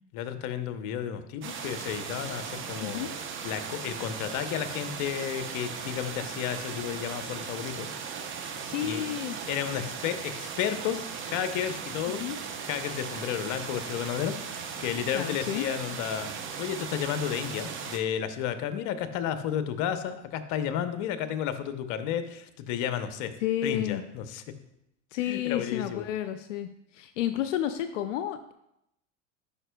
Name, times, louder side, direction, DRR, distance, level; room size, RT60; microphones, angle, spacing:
voice 1, 0.1-3.1 3.4-7.9 8.3-8.5 8.8-9.0 9.5-12.2 12.6-16.3 16.6-23.3 23.6-24.4 25.3-26.1, left 9 dB, 55° left, 10 dB, 0.8 m, -32 dB
sound 1, 1.4-18.0, right 6 dB, 35° right, 0.8 m, -37 dB
voice 2, 2.8-3.1 8.6-9.4 12.2-12.4 15.1-15.7 23.4-24.0 25.1-28.5, left 11 dB, 90° left, 9 dB, 0.5 m, -31 dB
11.0 x 5.1 x 2.2 m, 0.80 s
hypercardioid pair, 90°, 36 cm